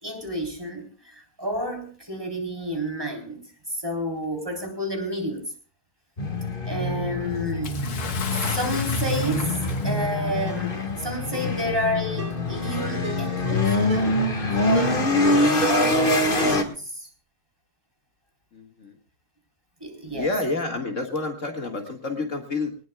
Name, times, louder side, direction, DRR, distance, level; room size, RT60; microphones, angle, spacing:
voice 1, 0.0-3.4 3.7-5.5 6.7-7.8 8.3-9.6 9.8-14.2 14.6-17.1 19.8-20.3, equal, 15° right, 2 dB, 4.1 m, -30 dB
sound 1, 6.2-16.6, left 2 dB, 35° left, 2.0 m, -24 dB
Bathtub (filling or washing) / Splash splatter, 7.6-10.2 11.2-11.3 12.3-12.4, left 6 dB, 80° left, 2.0 m, -34 dB
Ringtone, 9.6-9.8 10.5-10.7 11.3-11.6 12.2-12.5 13.0-13.3 13.9-14.3 14.7-15.1 15.6-16.1 16.4-16.5, right 4 dB, 65° right, 3.6 m, -35 dB
voice 2, 18.5-19.0 20.1-22.8, left 3 dB, 55° left, 4 dB, 2.4 m, -29 dB
21.5 x 20.0 x 2.4 m, 0.38 s
omnidirectional pair, 1.6 m